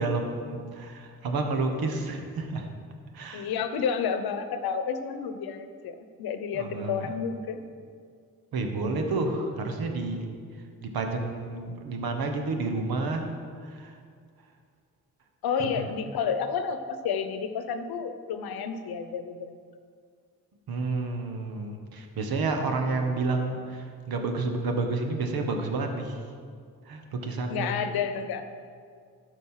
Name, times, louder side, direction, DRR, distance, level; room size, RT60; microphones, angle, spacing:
voice 1, 0.0-2.7 3.1-3.5 6.5-7.1 8.5-10.3 10.8-13.3 13.6-14.0 15.6-15.9 20.7-26.1 26.9-27.7, right 3 dB, 75° right, 4 dB, 1.4 m, -30 dB
voice 2, 3.3-7.6 15.4-19.5 27.5-28.4, left 6 dB, 85° left, 10 dB, 0.8 m, -30 dB
12.5 x 5.3 x 5.7 m, 2.1 s
cardioid pair, 90°, 36 cm